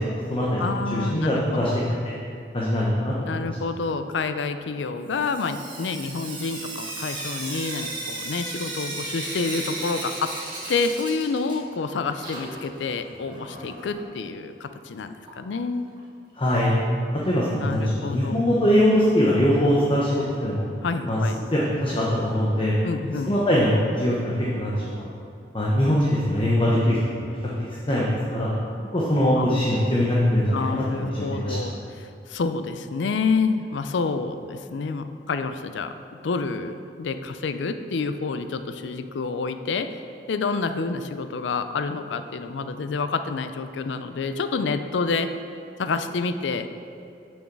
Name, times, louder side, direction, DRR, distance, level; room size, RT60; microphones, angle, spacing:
voice 1, 0.0-0.7 0.9-1.7 2.5-3.4 16.4-16.7 17.3-20.6 21.0-21.2 21.5-22.7 23.2-25.1 25.5-27.4 27.7-28.5 28.9-31.7, equal, 30° left, -5 dB, 0.9 m, -22 dB
voice 2, 0.6-1.8 3.3-10.3 10.7-15.9 17.6-18.5 20.8-21.4 22.8-23.3 29.4-29.5 30.5-35.9 36.2-40.0 40.3-45.3 45.8-46.7, left 4 dB, 80° left, 10 dB, 0.4 m, -28 dB
Sink (filling or washing) / Drip, 5.1-11.8 12.1-14.0 15.2-15.3 15.6-15.7 16.0-16.1 19.0-19.1 19.6-19.7 20.2-20.3 20.9-21.0 21.6-21.7 22.6-22.7, right 2 dB, 25° right, 1.6 m, -35 dB
6.8 x 6.4 x 4.7 m, 2.5 s
head